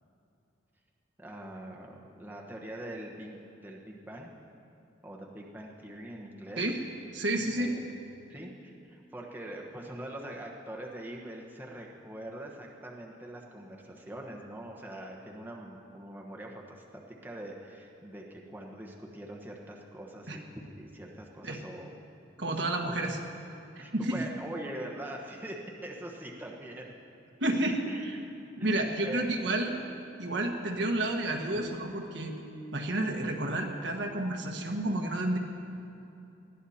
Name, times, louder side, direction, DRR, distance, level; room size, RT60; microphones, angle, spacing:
voice 1, 1.2-4.3 5.0-6.7 7.4-7.8 8.3-20.4 20.8-21.9 22.9-23.0 23.8-25.6 25.8-26.9 27.8-28.2 28.6-29.5 31.5-31.6, right 1 dB, 10° right, -1 dB, 1.2 m, -43 dB
voice 2, 7.1-7.7 20.3-20.4 21.4-21.6 22.4-23.2 23.9-24.2 27.4-27.8 28.6-29.7 30.2-32.3 32.7-35.4, right 1 dB, 65° right, 2 dB, 1.5 m, -30 dB
20.0 x 14.0 x 4.3 m, 2.8 s
head